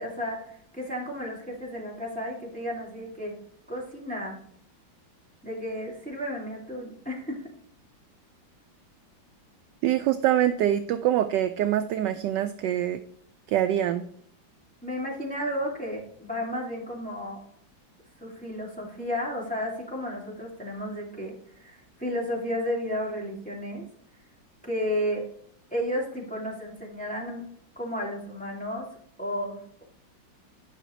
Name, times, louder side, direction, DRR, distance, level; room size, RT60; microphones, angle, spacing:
voice 1, 0.0-3.3 3.7-4.4 5.4-7.5 14.8-17.4 18.2-23.9 24.6-25.3 25.7-27.4 27.8-28.9 29.2-29.8, equal, 5° left, -4 dB, 2.3 m, -33 dB
voice 2, 9.8-13.0 13.5-14.1, right 11 dB, 75° right, 9 dB, 1.1 m, -24 dB
10.0 x 5.9 x 3.1 m, 0.64 s
omnidirectional pair, 2.2 m